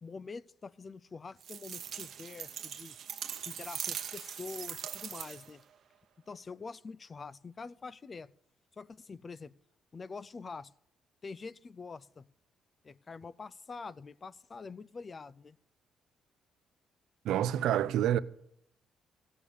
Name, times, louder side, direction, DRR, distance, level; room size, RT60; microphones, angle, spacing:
voice 1, 0.0-3.0 3.4-5.6 6.3-8.3 8.7-9.5 9.9-10.7 11.2-12.3 12.8-15.6, left 4 dB, 35° left, 0.4 m, -45 dB
sound 1, 1.4-5.6, right 8 dB, 65° right, 0.9 m, -41 dB
voice 2, 17.2-18.2, right 11 dB, 85° right, 0.5 m, -27 dB
15.0 x 8.6 x 6.8 m
cardioid pair, 90°, 0 cm